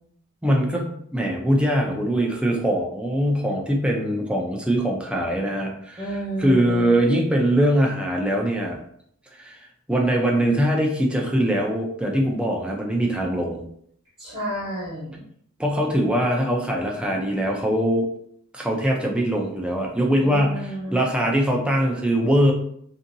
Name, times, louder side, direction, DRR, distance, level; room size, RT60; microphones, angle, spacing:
voice 1, 0.4-6.0 6.4-8.8 9.3-9.6 9.9-13.6 15.6-18.1 18.5-20.6 20.9-22.5, equal, 5° right, 0 dB, 0.4 m, -22 dB
voice 2, 6.0-7.0 14.2-15.2 20.2-21.0, right 1 dB, 25° right, -9 dB, 1.0 m, -31 dB
2.7 x 2.7 x 2.6 m, 0.67 s
head